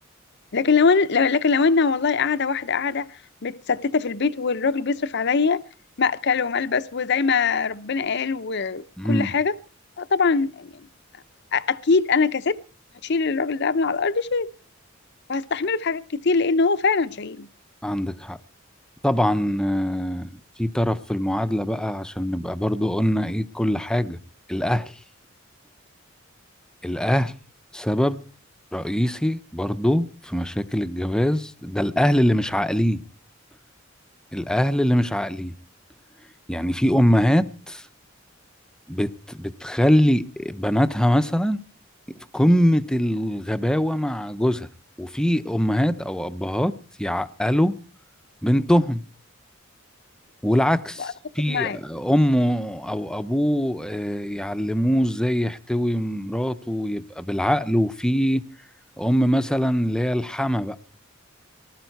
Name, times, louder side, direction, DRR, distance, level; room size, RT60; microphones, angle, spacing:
voice 1, 0.5-3.2 3.4-5.6 6.0-9.6 10.0-10.8 11.5-12.6 13.0-14.5 15.3-17.5 51.0-51.1 51.5-51.8, left 4 dB, 55° left, 0.7 m, -22 dB
voice 2, 9.0-9.3 17.8-18.4 19.0-20.3 20.6-24.2 24.5-25.0 26.8-27.3 27.7-28.2 28.7-33.0 34.3-35.5 36.5-37.8 38.9-41.6 42.3-44.7 45.0-47.7 48.4-49.0 50.4-58.4 59.0-60.8, equal, 5° left, 0.7 m, -23 dB
19.5 x 12.5 x 4.6 m
head